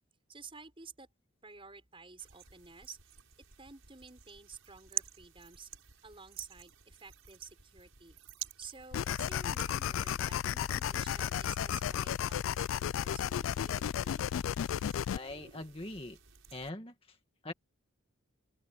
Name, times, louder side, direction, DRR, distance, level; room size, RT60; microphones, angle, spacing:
voice 1, 0.3-1.1 1.4-3.0 3.6-5.7 6.0-8.2 8.6-14.3, right 5 dB, 25° right, 5.9 m, -52 dB
sound 1, 2.2-16.7, right 11 dB, 75° right, 5.8 m, -49 dB
sound 2, 8.9-15.2, left 9 dB, 70° left, 0.3 m, -33 dB
voice 2, 15.1-16.2 16.5-16.9 17.4-17.5, left 2 dB, 25° left, 1.8 m, -42 dB
open air
head